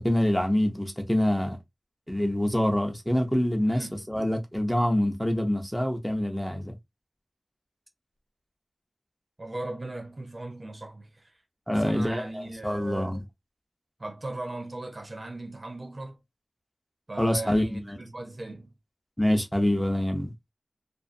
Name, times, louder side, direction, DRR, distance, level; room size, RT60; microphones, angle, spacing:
voice 1, 0.0-1.6 2.1-6.7 11.7-13.2 17.2-18.0 19.2-20.3, left 1 dB, 5° left, 0.7 m, -26 dB
voice 2, 3.7-4.0 9.4-11.3 11.8-13.2 14.0-16.2 17.1-18.7, right 2 dB, 50° right, 0.6 m, -38 dB
2.5 x 2.4 x 2.5 m
wide cardioid pair, 50°, 0 cm